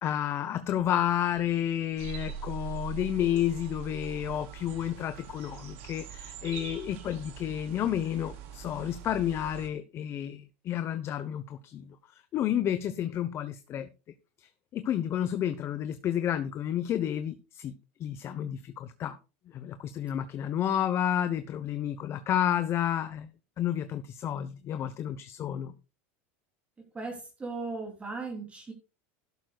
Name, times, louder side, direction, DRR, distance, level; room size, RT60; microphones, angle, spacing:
voice 1, 0.0-13.9 14.4-17.7 18.0-19.2 19.5-23.3 23.6-25.7, left 10 dB, 35° left, 10 dB, 1.0 m, -31 dB
sound 1, 2.0-9.7, right 8 dB, 75° right, 3.3 m, -42 dB
voice 2, 20.4-21.0 26.9-28.7, right 3 dB, 20° right, 2 dB, 3.1 m, -38 dB
12.0 x 11.5 x 2.4 m, 0.30 s
supercardioid pair, 125°, 7 cm